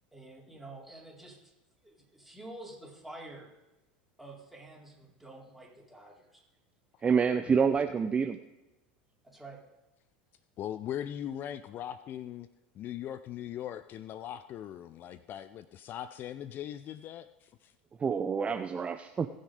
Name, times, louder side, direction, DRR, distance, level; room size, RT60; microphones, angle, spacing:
voice 1, 0.1-1.4 1.8-3.5 4.2-6.4 9.2-9.6, right 2 dB, ahead, -3 dB, 4.0 m, -48 dB
voice 2, 7.0-8.4 18.0-19.3, right 6 dB, 25° right, 8 dB, 0.6 m, -27 dB
voice 3, 10.6-12.5 12.7-17.7, left 10 dB, 45° left, 13 dB, 0.5 m, -40 dB
19.0 x 6.6 x 5.0 m, 0.97 s
hypercardioid pair, 90°, 5 cm